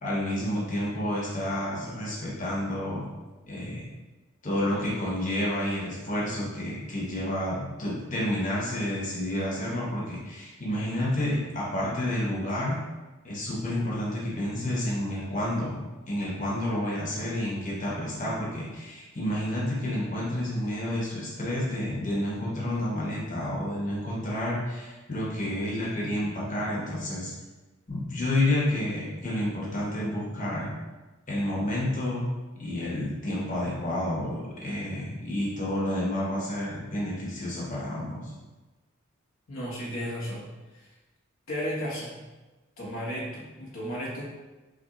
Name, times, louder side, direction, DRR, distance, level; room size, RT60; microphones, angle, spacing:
voice 1, 0.0-3.1 3.5-3.9 4.4-12.8 13.2-15.8 16.1-27.3 27.9-30.7 31.3-32.3 32.6-38.3, left 1 dB, 40° left, -6 dB, 0.9 m, -30 dB
voice 2, 39.5-40.4 40.7-40.9 41.5-42.3 42.8-44.2, equal, 80° left, -5 dB, 0.9 m, -34 dB
4.9 x 2.1 x 2.9 m, 1.2 s
head